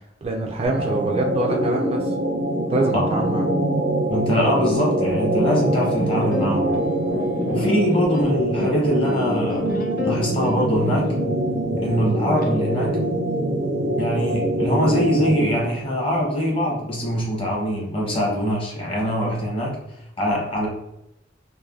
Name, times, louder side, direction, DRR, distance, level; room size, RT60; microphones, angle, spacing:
voice 1, 0.2-2.1 2.7-3.5, right 2 dB, 35° right, 1 dB, 0.3 m, -25 dB
sound 1, 0.6-15.8, right 1 dB, 75° right, 0.6 m, -24 dB
voice 2, 2.9-3.4 4.1-6.7 7.5-9.7 10.0-11.1 11.8-13.0 13.9-19.8 20.2-20.7, equal, 30° left, -2 dB, 0.9 m, -23 dB
sound 2, 5.2-10.5, equal, 75° left, 1.1 m, -34 dB
sound 3, 5.5-12.5, left 3 dB, 55° left, 0.4 m, -33 dB
3.2 x 2.1 x 2.4 m, 0.85 s
head